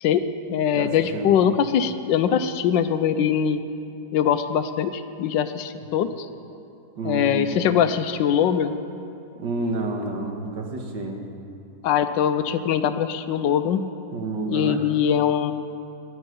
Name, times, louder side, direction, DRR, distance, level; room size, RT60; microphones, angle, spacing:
voice 1, 0.0-3.6 4.1-6.3 7.0-8.7 11.8-13.9 14.5-15.5, left 8 dB, 85° left, 11 dB, 1.4 m, -22 dB
voice 2, 0.7-1.3 7.0-7.5 9.4-11.2 14.1-14.8, right 3 dB, 75° right, 2 dB, 2.1 m, -29 dB
19.0 x 11.5 x 5.3 m, 2.6 s
omnidirectional pair, 2.0 m